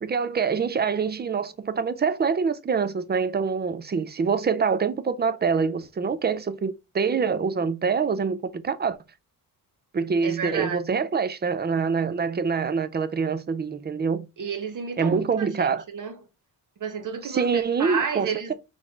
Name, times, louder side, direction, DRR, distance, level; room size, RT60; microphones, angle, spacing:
voice 1, 0.0-9.0 9.9-14.3 15.0-15.8 17.2-18.5, right 5 dB, 25° right, 0.5 m, -25 dB
voice 2, 10.2-10.8 14.4-16.2 16.8-18.5, right 6 dB, 55° right, 0.9 m, -31 dB
4.2 x 3.2 x 3.4 m
cardioid pair, 100°, 38 cm